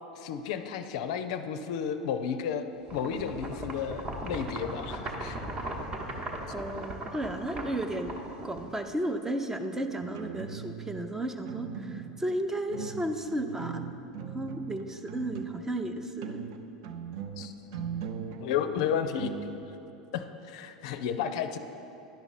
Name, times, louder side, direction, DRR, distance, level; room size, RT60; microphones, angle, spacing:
voice 1, 0.2-2.6 2.9-5.4 17.4-17.5 18.4-19.3 20.1-21.6, left 8 dB, 60° left, 9 dB, 0.4 m, -32 dB
sound 1, 2.9-9.0, right 1 dB, 30° right, 1.0 m, -38 dB
voice 2, 6.5-8.1 8.4-13.8 14.3-16.4, right 1 dB, 10° right, 7 dB, 0.6 m, -33 dB
sound 2, 10.0-11.1 11.5-12.3 12.7-15.7 16.0-19.4, right 7 dB, 55° right, 0.6 m, -39 dB
10.5 x 5.8 x 4.1 m, 2.9 s
figure-of-eight pair, 85°, 4 cm